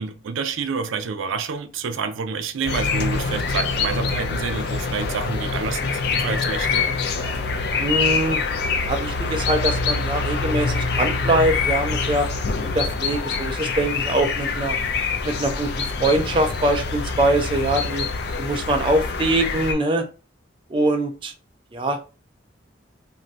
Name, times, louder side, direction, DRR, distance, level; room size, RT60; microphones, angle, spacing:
voice 1, 0.0-7.0, right 5 dB, 90° right, 0.4 m, -28 dB
sound 1, 2.7-19.7, left 4 dB, 55° left, 0.4 m, -25 dB
voice 2, 7.8-8.4 8.8-12.3 12.7-14.8 15.2-18.1 18.4-20.1 20.7-21.3 21.7-22.0, right 1 dB, 25° right, 0.3 m, -23 dB
2.6 x 2.5 x 3.1 m
head